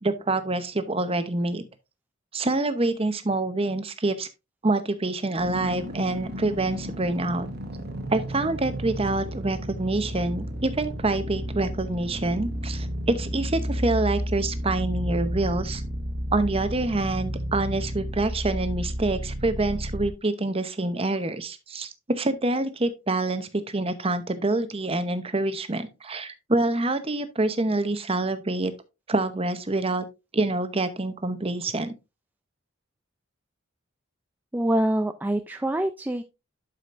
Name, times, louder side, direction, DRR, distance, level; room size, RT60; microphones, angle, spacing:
voice 1, 0.0-1.7 2.3-4.3 4.6-7.5 8.1-15.8 16.3-28.7 29.1-30.0 30.3-31.9, right 2 dB, 30° right, 0.8 m, -26 dB
sound 1, 5.4-20.1, equal, 50° right, 1.3 m, -32 dB
voice 2, 34.5-36.2, right 1 dB, 10° right, 0.4 m, -25 dB
12.0 x 5.1 x 2.5 m
head